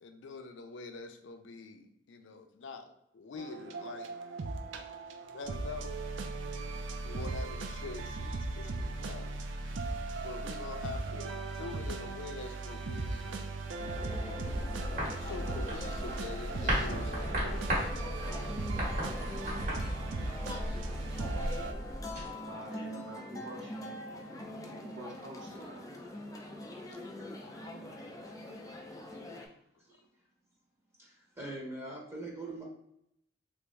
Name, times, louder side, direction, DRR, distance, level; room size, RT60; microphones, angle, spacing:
voice 1, 0.0-4.1 5.2-5.9 6.9-13.4 15.2-19.7 27.2-27.6 28.2-28.6, left 4 dB, 80° left, 7 dB, 0.4 m, -46 dB
sound 1, 3.4-21.7, right 2 dB, 85° right, 0.4 m, -38 dB
sound 2, 13.8-29.5, left 1 dB, 20° left, 0.4 m, -43 dB
sound 3, 14.4-22.3, equal, 45° right, 1.3 m, -37 dB
voice 2, 22.5-23.7 24.8-25.9, right 1 dB, 70° right, 0 dB, 0.8 m, -47 dB
voice 3, 31.0-32.6, right 2 dB, 15° right, -3 dB, 0.9 m, -42 dB
3.4 x 2.5 x 3.2 m, 0.77 s
head